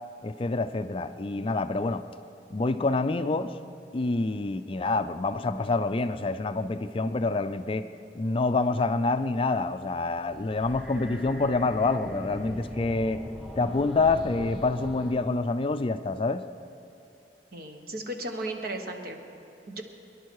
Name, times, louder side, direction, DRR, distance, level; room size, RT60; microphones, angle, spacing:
voice 1, 0.2-2.0 2.5-3.5 3.9-7.9 8.2-13.2 13.6-16.4, left 3 dB, 30° left, 10 dB, 0.4 m, -27 dB
sound 1, 10.2-15.1, left 1 dB, 5° right, 1.3 m, -40 dB
voice 2, 17.5-19.2 19.7-19.8, right 1 dB, 55° right, 4 dB, 1.3 m, -35 dB
23.0 x 11.0 x 4.7 m, 2.7 s
head